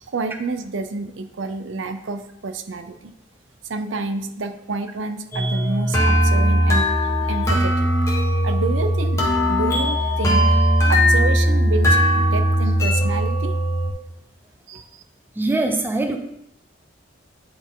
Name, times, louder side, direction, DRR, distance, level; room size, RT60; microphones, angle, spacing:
voice 1, 0.1-3.1 3.7-8.0 8.4-10.6 10.9-13.5 14.7-15.0, right 3 dB, 85° right, 8 dB, 0.6 m, -29 dB
sound 1, 5.3-13.9, equal, 15° left, 1.4 m, -19 dB
voice 2, 15.4-16.2, right 2 dB, 10° right, 5 dB, 0.7 m, -22 dB
9.3 x 4.2 x 3.8 m, 0.76 s
head